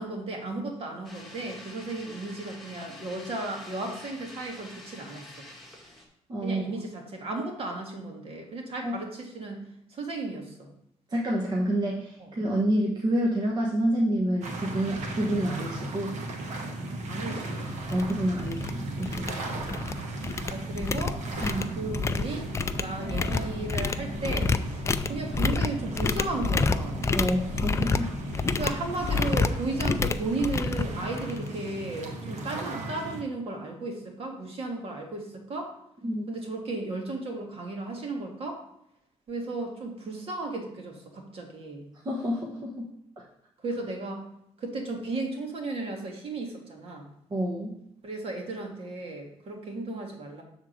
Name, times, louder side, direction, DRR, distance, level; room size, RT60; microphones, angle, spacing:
voice 1, 0.0-5.5 6.4-9.6 9.9-10.7 12.2-12.3 17.1-17.7 19.4-19.6 20.5-21.2 21.8-22.5 22.8-27.1 28.6-35.7 36.3-38.6 39.3-41.9 43.6-44.2 44.6-47.1 48.0-50.4, right 2 dB, 50° right, 1 dB, 1.7 m, -35 dB
sound 1, 1.0-6.0, left 1 dB, ahead, 1.9 m, -47 dB
voice 2, 6.3-6.8 8.8-9.0 11.1-16.2 17.9-19.8 21.4-21.7 27.1-28.1 36.0-36.2 42.0-42.9 43.2-43.3 47.3-47.8, right 1 dB, 35° right, -2 dB, 1.2 m, -28 dB
sound 2, 14.4-33.2, right 2 dB, 70° right, 1.4 m, -36 dB
sound 3, 17.4-17.5 17.9-18.1 18.4-18.7 19.0-19.9 20.2-31.5, left 4 dB, 25° left, 0.4 m, -29 dB
7.5 x 3.7 x 6.3 m, 0.77 s
cardioid pair, 115°, 13 cm